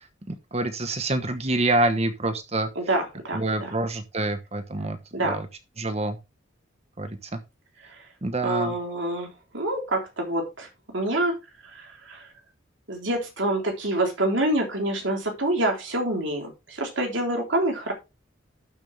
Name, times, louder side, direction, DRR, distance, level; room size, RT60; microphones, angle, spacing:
voice 1, 0.0-2.7 3.3-5.5 5.8-6.2 7.0-7.4 8.2-8.7, right 2 dB, 30° right, 1.0 m, -27 dB
voice 2, 2.8-3.7 5.1-5.4 7.8-8.1 8.4-9.3 9.5-10.7 10.9-11.3 11.6-12.3 12.9-17.9, right 1 dB, 60° right, 3.6 m, -27 dB
12.0 x 7.1 x 3.4 m
head